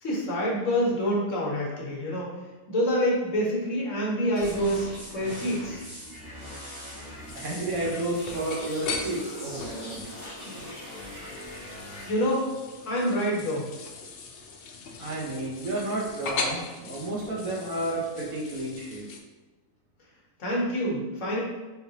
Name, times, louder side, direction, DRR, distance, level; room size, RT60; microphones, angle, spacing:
voice 1, 0.0-2.3 2.7-5.8 12.1-12.5 12.8-13.7 20.4-21.4, equal, 60° left, -4 dB, 1.2 m, -27 dB
sound 1, 4.3-12.1, equal, 25° right, 1.5 m, -41 dB
sound 2, 7.3-19.2, left 4 dB, 90° left, 0.5 m, -39 dB
voice 2, 7.3-10.0 15.0-19.1, right 2 dB, 70° right, -3 dB, 1.3 m, -31 dB
3.8 x 3.4 x 2.7 m, 1.2 s
omnidirectional pair, 1.6 m